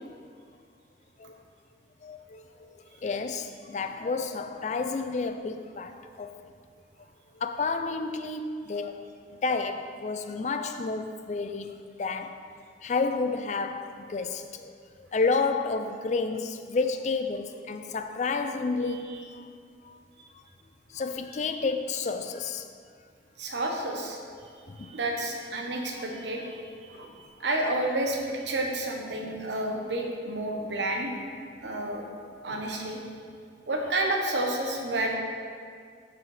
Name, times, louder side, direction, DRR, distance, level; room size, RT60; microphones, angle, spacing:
voice 1, 2.0-2.7 3.0-6.3 7.4-9.1 9.4-11.7 12.0-12.4 12.8-14.7 15.0-19.4 19.8-19.9 20.9-22.6 24.7-25.0, left 4 dB, 40° left, 0.4 m, -30 dB
voice 2, 23.4-24.2 24.8-31.1 31.6-32.0 32.4-33.0 33.7-35.2, right 1 dB, 80° right, 1.1 m, -30 dB
13.0 x 4.8 x 3.3 m
head